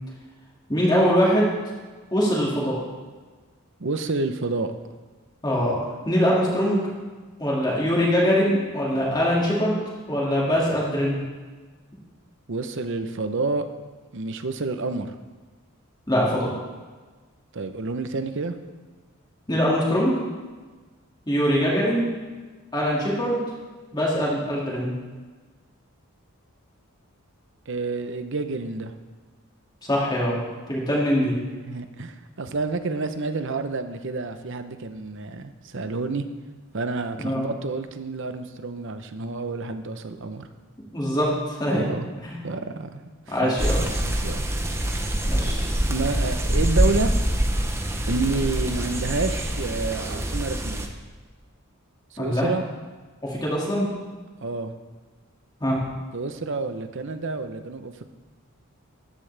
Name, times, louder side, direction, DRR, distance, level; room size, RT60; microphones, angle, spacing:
voice 1, 0.7-1.5 2.1-2.8 5.4-5.8 6.1-6.8 7.4-9.8 10.1-11.2 16.1-16.5 19.5-20.1 21.3-22.1 22.7-23.4 23.9-24.9 29.8-30.4 30.7-31.3 37.2-37.4 40.9-41.8 42.2-42.3 43.3-43.8 45.2-45.7 52.2-52.5 53.2-53.9 55.6-55.8, equal, 20° left, -5 dB, 2.2 m, -22 dB
voice 2, 3.8-4.7 12.5-13.7 14.1-15.1 17.5-18.6 27.7-28.9 31.7-36.3 36.7-40.5 41.7-42.1 42.4-44.4 45.9-47.2 48.1-50.9 52.1-52.7 54.4-54.7 56.1-58.0, right 3 dB, 60° right, 9 dB, 0.8 m, -29 dB
sound 1, 43.6-50.9, right 1 dB, 10° right, 0.7 m, -25 dB
14.0 x 11.0 x 3.4 m, 1.4 s
head